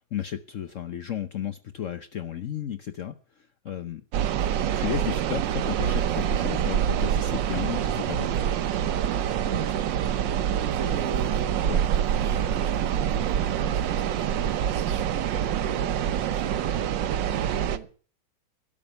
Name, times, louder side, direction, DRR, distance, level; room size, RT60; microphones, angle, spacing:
voice 1, 0.1-4.0 4.7-8.3 11.7-11.8, left 9 dB, 55° left, 1.0 m, -33 dB
sound 1, 4.1-17.8, right 9 dB, 90° right, 1.5 m, -26 dB
voice 2, 9.4-10.0 10.2-11.7 12.2-16.6 17.3-17.9, right 6 dB, 50° right, 1.9 m, -40 dB
12.5 x 7.5 x 9.6 m
omnidirectional pair, 1.9 m